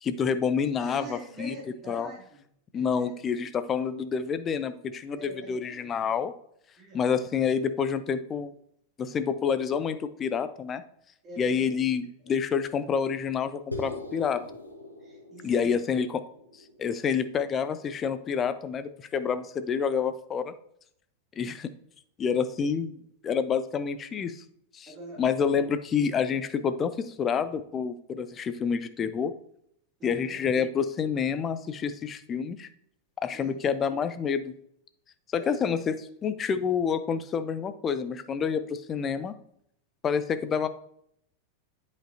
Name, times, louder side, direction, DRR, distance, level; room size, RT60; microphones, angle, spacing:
voice 1, 0.0-1.6 1.9-2.1 2.7-6.3 6.9-8.5 9.0-10.8 11.4-14.4 15.4-16.2 16.8-20.5 21.4-21.7 22.2-24.4 24.7-24.9 25.2-29.3 30.0-32.7 33.2-34.4 35.3-35.9 36.2-39.3 40.0-40.7, left 6 dB, 25° left, 12 dB, 0.5 m, -28 dB
voice 2, 0.8-2.5 2.7-3.5 5.1-6.0 6.8-7.0 11.2-11.8 12.2-12.3 15.0-15.8 24.9-25.5 30.0-30.4 33.3-33.5 35.3-36.1, right 1 dB, 25° right, -1 dB, 2.6 m, -45 dB
sound 1, 13.7-18.1, left 1 dB, 85° left, 1.0 m, -42 dB
8.7 x 5.2 x 2.7 m, 0.71 s
figure-of-eight pair, 90°, 0 cm